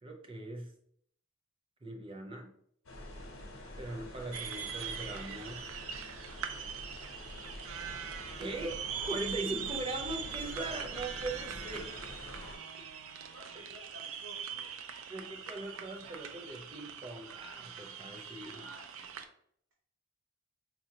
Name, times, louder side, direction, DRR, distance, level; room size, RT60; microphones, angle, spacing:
voice 1, 0.0-0.7 1.8-2.5 3.8-5.6 8.4-11.9 13.5-13.7 15.1-18.7, right 2 dB, 25° right, 3 dB, 0.5 m, -40 dB
sound 1, 2.8-12.6, left 1 dB, 85° left, 0.9 m, -47 dB
voice 2, 3.1-4.0 8.9-9.2 11.7-11.8 13.3-14.7 18.5-19.2, right 2 dB, 55° right, -4 dB, 0.8 m, -53 dB
sound 2, 4.3-19.2, right 8 dB, 85° right, 0.4 m, -42 dB
4.1 x 2.5 x 2.8 m, 0.66 s
head